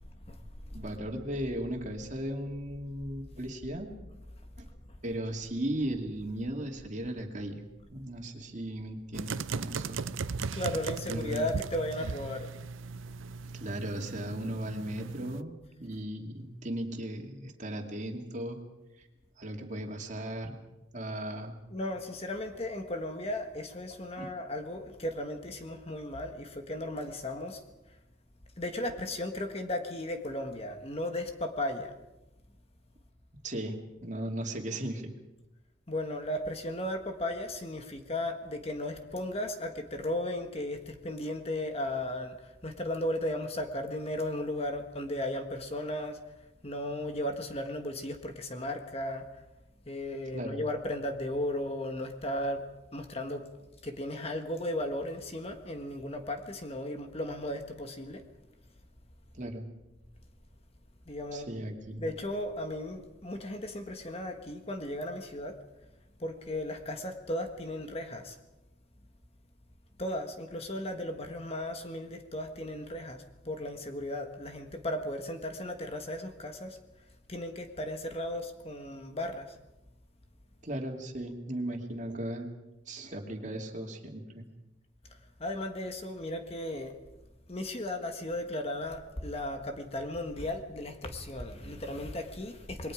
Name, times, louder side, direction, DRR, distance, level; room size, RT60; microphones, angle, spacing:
voice 1, 0.7-3.9 4.6-4.7 5.0-7.6 7.9-10.1 11.1-11.5 13.5-18.6 19.0-19.1 19.4-20.6 20.9-21.6 24.2-24.3 33.4-33.7 34.0-35.1 50.3-50.6 59.3-59.7 61.3-62.1 80.6-82.5 82.9-84.5, right 1 dB, 40° right, 2 dB, 2.6 m, -36 dB
sound 1, 9.1-15.4, right 4 dB, 85° right, 0.6 m, -37 dB
voice 2, 10.5-12.5 21.7-27.6 28.6-31.9 35.9-46.2 46.6-49.3 49.9-52.6 52.9-53.5 53.8-58.2 61.1-61.6 62.0-65.6 66.2-68.4 70.0-76.8 77.3-79.6 85.4-87.0 87.5-92.9, left 1 dB, 30° left, 6 dB, 1.5 m, -35 dB
27.5 x 22.0 x 5.0 m, 1.0 s
head